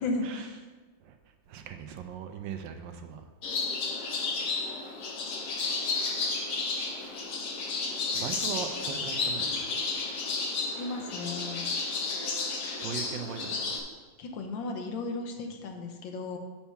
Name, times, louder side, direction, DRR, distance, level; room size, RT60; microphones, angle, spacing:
voice 1, 0.0-0.6 10.8-11.6 14.2-16.4, left 3 dB, 85° left, 4 dB, 1.6 m, -35 dB
voice 2, 1.5-3.2 8.1-9.8 12.8-13.8, right 7 dB, 75° right, 6 dB, 1.3 m, -39 dB
sound 1, 3.4-13.8, left 3 dB, 60° left, 1.5 m, -32 dB
7.2 x 4.5 x 5.7 m, 1.3 s
omnidirectional pair, 2.0 m